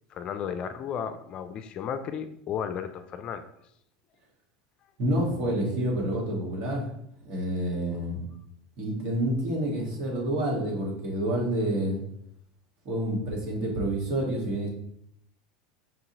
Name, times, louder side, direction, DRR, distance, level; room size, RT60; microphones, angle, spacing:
voice 1, 0.1-3.4 7.7-8.0, left 8 dB, 45° left, 9 dB, 0.4 m, -34 dB
voice 2, 5.0-6.9 7.2-8.2 8.8-12.0 12.8-14.7, right 1 dB, 55° right, -2 dB, 1.6 m, -28 dB
4.7 x 2.8 x 3.9 m, 0.73 s
hypercardioid pair, 95°, 2 cm